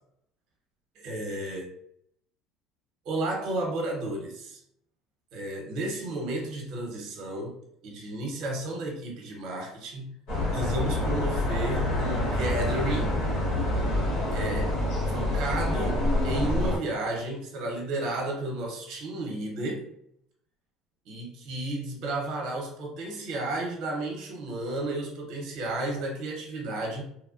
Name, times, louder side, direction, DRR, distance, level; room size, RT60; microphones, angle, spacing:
voice 1, 0.9-1.7 3.0-4.6 5.3-7.6 7.8-10.2 10.5-13.2 14.3-14.8 15.1-19.9 21.1-27.0, right 1 dB, 60° right, 0 dB, 0.8 m, -32 dB
sound 1, 10.3-16.8, left 1 dB, 75° left, 1.1 m, -27 dB
3.0 x 2.2 x 2.4 m, 0.71 s
supercardioid pair, 115°, 0 cm